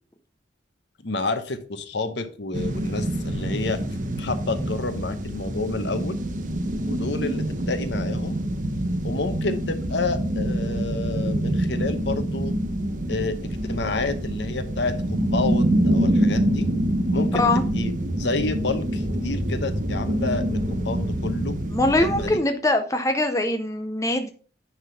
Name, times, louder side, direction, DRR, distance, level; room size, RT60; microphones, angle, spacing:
voice 1, 1.0-3.8 4.2-6.2 6.9-8.4 9.0-12.5 13.1-16.7 17.1-17.9 18.2-21.5 22.0-22.4, left 3 dB, 65° left, 10 dB, 0.9 m, -29 dB
sound 1, 2.5-22.3, right 1 dB, 40° right, 0.9 m, -26 dB
voice 2, 21.7-24.3, left 2 dB, 15° left, 6 dB, 0.6 m, -22 dB
9.7 x 3.6 x 5.7 m, 0.41 s
head